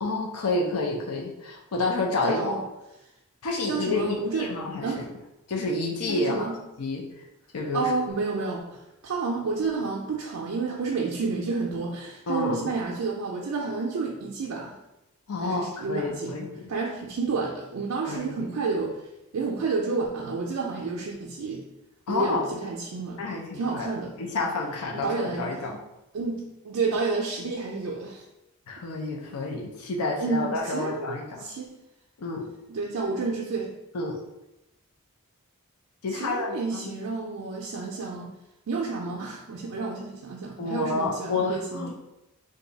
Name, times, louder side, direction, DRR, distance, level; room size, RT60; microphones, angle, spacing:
voice 1, 0.0-2.5 3.4-5.0 5.5-6.5 6.8-7.3 7.5-7.9 12.3-12.7 15.3-16.7 18.1-18.5 22.1-22.4 23.2-23.9 24.2-25.8 28.7-31.5 32.2-32.5 33.9-34.2 36.0-36.9 40.6-41.9, left 3 dB, 75° left, 0 dB, 0.5 m, -29 dB
voice 2, 2.2-2.6 3.7-4.5 4.8-5.1 6.1-6.6 7.7-14.8 15.4-16.4 16.7-19.0 19.3-21.7 22.1-23.2 23.5-24.1 24.9-25.5 26.1-28.3 30.2-31.8 32.7-33.7 36.1-38.3 38.7-41.9, right 4 dB, 70° right, -1 dB, 0.4 m, -30 dB
2.6 x 2.3 x 3.8 m, 0.92 s
head